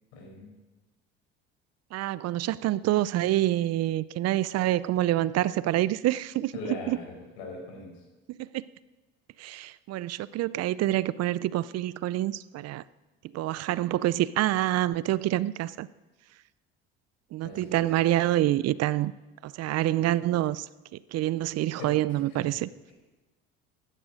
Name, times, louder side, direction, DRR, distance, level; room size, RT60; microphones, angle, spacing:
voice 1, 0.1-0.5 6.5-8.0 17.4-17.8 21.8-22.2, left 2 dB, 85° left, 1 dB, 4.8 m, -40 dB
voice 2, 1.9-6.5 6.9-7.0 8.4-8.6 9.4-12.8 13.3-15.9 17.3-19.1 19.4-20.7 21.1-22.7, right 14 dB, 55° right, 19 dB, 0.5 m, -27 dB
14.5 x 10.0 x 5.1 m, 1.2 s
hypercardioid pair, 70°, 31 cm